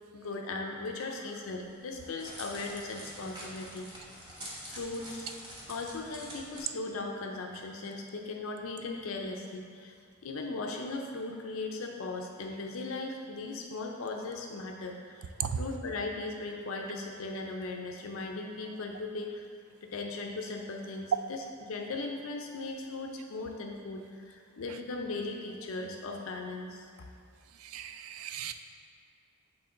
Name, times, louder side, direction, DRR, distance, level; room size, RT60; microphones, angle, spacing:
voice 1, 0.1-3.9 4.7-5.3 5.7-9.9 10.2-15.3 15.6-19.4 19.8-26.9, left 3 dB, 70° left, 1 dB, 0.5 m, -38 dB
Crackle, 1.6-6.6, equal, 20° right, 1.1 m, -46 dB
voice 2, 27.6-28.5, right 8 dB, 90° right, 9 dB, 0.4 m, -36 dB
7.9 x 3.7 x 3.8 m, 2.3 s
head